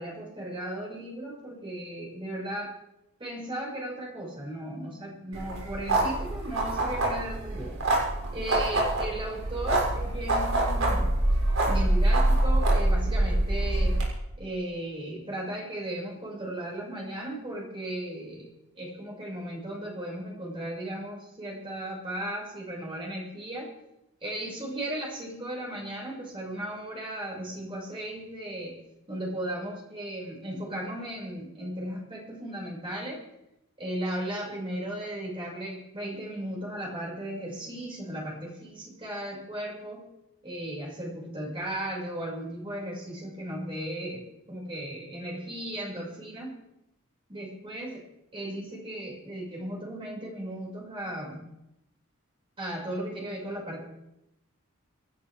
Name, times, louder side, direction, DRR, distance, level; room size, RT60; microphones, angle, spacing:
voice 1, 0.0-2.8 3.2-7.8 8.3-11.2 11.7-14.0 14.4-18.5 18.7-23.7 24.2-28.8 29.1-33.2 33.8-40.1 40.4-46.6 47.3-48.0 48.3-51.5 52.6-53.8, right 1 dB, 25° right, -4 dB, 5.7 m, -36 dB
sound 1, 5.3-14.0, right 1 dB, 70° right, 6.5 m, -25 dB
28.0 x 12.5 x 3.5 m, 0.87 s
head